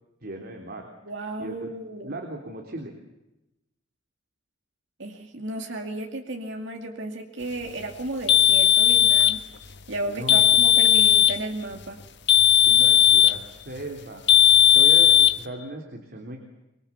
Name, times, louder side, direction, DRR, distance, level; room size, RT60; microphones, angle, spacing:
voice 1, 0.2-0.9 1.4-1.7 2.0-2.9 10.0-10.5 12.7-14.2 14.7-16.4, right 1 dB, 55° right, 2 dB, 3.5 m, -37 dB
voice 2, 1.1-2.1 5.0-9.4 9.9-12.0, right 2 dB, 70° right, 3 dB, 2.4 m, -34 dB
sound 1, 8.3-9.4 10.3-11.4 12.3-13.4 14.3-15.4, left 11 dB, 60° left, 1.5 m, -16 dB
25.5 x 24.0 x 7.2 m, 0.95 s
head